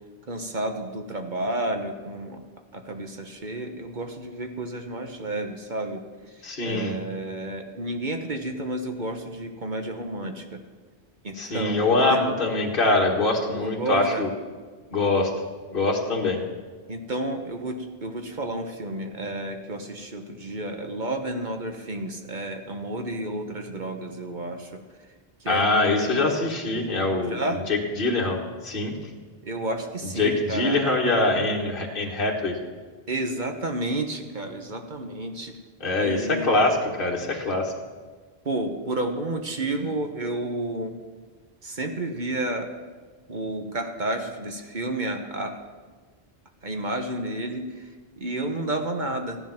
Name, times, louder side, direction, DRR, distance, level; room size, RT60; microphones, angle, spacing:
voice 1, 0.3-2.4 2.7-6.0 6.3-10.6 11.2-12.2 13.5-14.3 16.9-24.8 25.4-26.3 27.2-27.6 29.4-30.8 33.1-35.6 36.0-36.5 38.4-41.0 41.6-42.7 43.3-45.6 46.6-49.4, right 2 dB, 50° right, 4 dB, 1.3 m, -31 dB
voice 2, 6.4-6.9 11.4-14.3 14.9-15.3 15.7-16.4 25.5-27.4 27.7-28.9 30.2-32.5 35.8-37.7, left 2 dB, 60° left, -1 dB, 1.8 m, -23 dB
15.0 x 11.0 x 5.9 m, 1.4 s
omnidirectional pair, 1.0 m